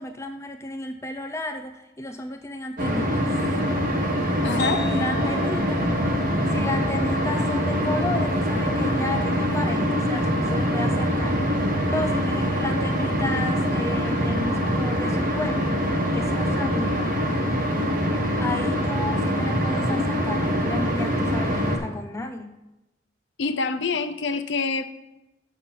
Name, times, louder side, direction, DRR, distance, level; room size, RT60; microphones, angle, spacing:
voice 1, 0.0-3.3 4.5-5.9 6.5-11.4 11.9-15.7 16.1-17.2 18.4-22.6, left 2 dB, 15° left, 6 dB, 0.3 m, -32 dB
sound 1, 2.8-21.8, equal, 45° right, 1.3 m, -24 dB
voice 2, 4.4-4.9 23.4-24.9, left 4 dB, 65° left, 11 dB, 0.6 m, -26 dB
sound 2, 4.6-12.0, left 8 dB, 50° left, 2.0 m, -41 dB
7.0 x 6.7 x 5.8 m, 0.99 s
head